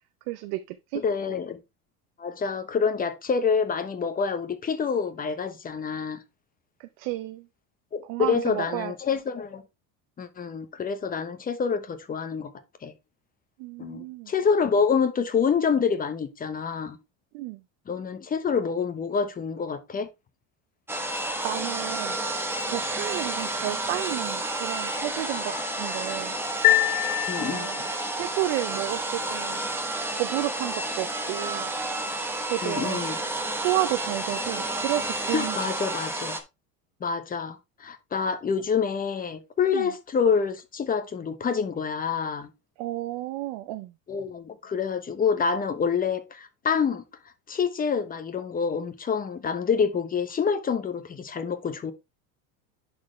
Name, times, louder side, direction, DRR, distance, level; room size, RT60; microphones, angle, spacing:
voice 1, 0.3-1.0 6.8-7.5 8.0-8.9 13.6-14.3 17.3-17.6 21.4-22.2 22.7-26.4 27.4-27.8 28.1-29.8 30.1-31.7 32.4-33.0 33.6-35.6 39.7-39.9 42.8-43.9, right 16 dB, 65° right, 0.8 m, -31 dB
voice 2, 1.0-1.6 2.2-6.2 7.9-9.6 10.2-12.5 12.8-12.9 13.8-17.0 17.9-20.1 27.3-27.9 32.6-33.2 35.3-36.4 37.0-42.5 44.1-47.0 47.5-51.9, left 6 dB, 20° left, 0.9 m, -27 dB
sound 1, 20.9-36.4, right 2 dB, 5° right, 1.1 m, -30 dB
sound 2, 26.6-28.1, left 17 dB, 40° left, 0.6 m, -24 dB
10.5 x 4.3 x 3.2 m
supercardioid pair, 140°, 40 cm